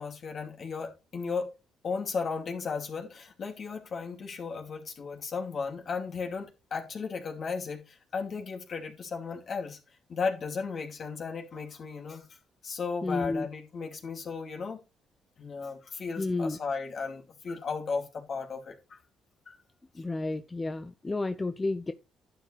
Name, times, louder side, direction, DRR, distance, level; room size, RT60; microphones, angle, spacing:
voice 1, 0.0-1.5 1.8-9.8 10.1-12.2 12.6-14.8 15.4-19.0 19.5-19.6, left 5 dB, 55° left, 2.6 m, -35 dB
voice 2, 13.0-13.5 16.2-16.6 19.9-21.9, left 2 dB, 25° left, 0.6 m, -31 dB
11.0 x 7.5 x 3.3 m
hypercardioid pair, 55°, 0 cm